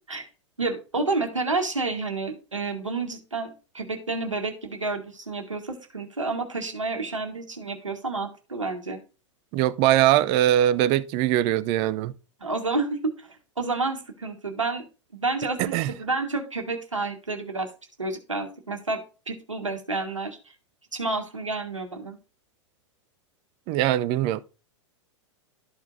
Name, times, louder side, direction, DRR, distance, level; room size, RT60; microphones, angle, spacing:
voice 1, 0.6-9.0 12.4-14.8 15.1-17.7 18.0-19.0 19.3-20.4 20.9-22.2, right 3 dB, 85° right, 1.6 m, -30 dB
voice 2, 9.5-12.1 15.6-15.9 23.7-24.4, right 13 dB, 35° right, 0.5 m, -21 dB
12.5 x 4.7 x 2.6 m
figure-of-eight pair, 100°, 16 cm